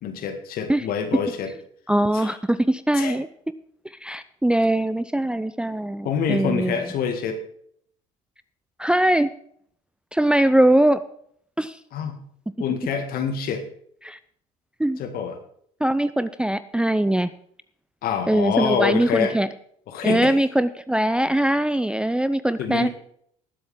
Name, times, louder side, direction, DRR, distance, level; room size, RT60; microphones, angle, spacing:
voice 1, 0.0-1.5 2.1-2.3 2.9-3.2 6.0-7.4 11.9-12.2 12.6-13.6 15.0-15.4 18.0-19.4 19.9-20.4 22.6-22.9, left 7 dB, 55° left, 7 dB, 2.0 m, -26 dB
voice 2, 1.9-3.3 4.0-6.8 8.8-9.3 10.1-11.0 11.6-11.8 14.0-14.2 14.8-15.0 15.8-17.3 18.3-19.5 20.0-22.9, right 1 dB, 5° right, 13 dB, 0.5 m, -21 dB
19.5 x 7.8 x 3.8 m, 0.66 s
hypercardioid pair, 65°, 18 cm